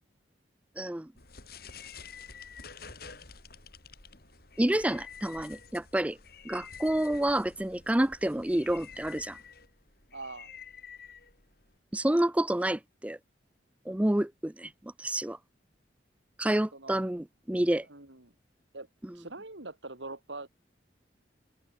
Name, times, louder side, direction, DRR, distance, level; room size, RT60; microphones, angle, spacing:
voice 1, 0.8-1.1 4.6-6.2 6.4-9.4 11.9-13.2 13.9-14.7 15.0-15.4 16.4-17.9 19.0-19.1, right 1 dB, 5° right, 0.4 m, -28 dB
sound 1, 1.2-11.8, left 6 dB, 55° left, 6.2 m, -49 dB
voice 2, 10.1-10.5 16.7-17.0 17.9-18.3 18.7-18.9 19.1-20.5, right 2 dB, 80° right, 4.2 m, -43 dB
head